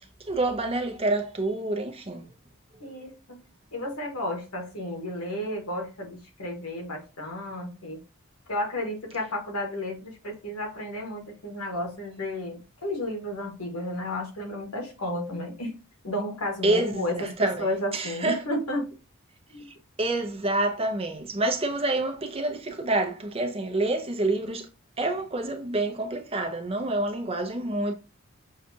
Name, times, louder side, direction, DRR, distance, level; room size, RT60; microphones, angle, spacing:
voice 1, 0.3-2.3 16.6-17.7 17.9-18.4 20.0-24.7 25.0-27.9, right 2 dB, 25° right, 0.6 m, -27 dB
voice 2, 2.8-3.4 3.7-8.0 8.5-15.8 16.0-18.9 19.5-19.7, left 1 dB, 85° left, 1.5 m, -32 dB
6.4 x 2.4 x 2.7 m
head